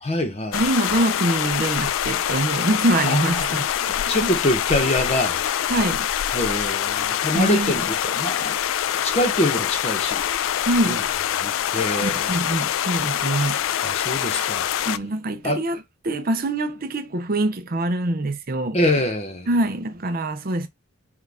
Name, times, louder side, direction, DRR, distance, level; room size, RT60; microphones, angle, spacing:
voice 1, 0.0-0.6 3.1-3.6 4.1-5.4 6.3-8.5 9.0-10.2 10.9-11.0 11.4-12.3 13.8-14.9 15.4-15.6 18.7-19.5, left 1 dB, 30° left, 0.9 m, -25 dB
sound 1, 0.5-15.0, left 10 dB, 70° left, 0.3 m, -25 dB
voice 2, 0.5-4.0 4.2-4.3 5.7-6.1 7.3-7.7 10.7-11.0 12.0-13.6 14.9-18.8 19.5-20.7, right 1 dB, 45° right, 0.6 m, -24 dB
6.2 x 2.4 x 3.4 m
head